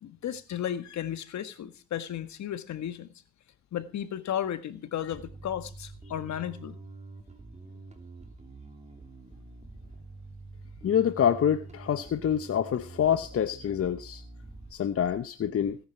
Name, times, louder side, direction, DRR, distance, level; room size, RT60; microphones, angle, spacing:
voice 1, 0.0-3.1 3.7-6.8, left 10 dB, 65° left, 11 dB, 1.7 m, -34 dB
Bass guitar, 5.1-14.7, right 3 dB, 20° right, 2.9 m, -46 dB
voice 2, 10.8-14.2 14.7-15.8, left 9 dB, 50° left, 10 dB, 1.0 m, -26 dB
17.5 x 10.0 x 4.5 m, 0.33 s
cardioid pair, 90°, 30 cm